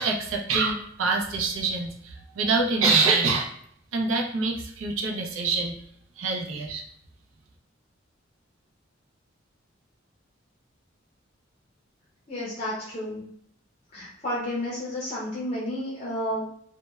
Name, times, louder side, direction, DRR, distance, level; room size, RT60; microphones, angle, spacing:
voice 1, 0.0-3.5 3.9-5.7 6.2-6.8, right 4 dB, 90° right, 1 dB, 0.5 m, -25 dB
voice 2, 12.3-13.2 13.9-16.4, left 1 dB, 35° left, -6 dB, 0.5 m, -31 dB
3.0 x 2.1 x 2.2 m, 0.67 s
head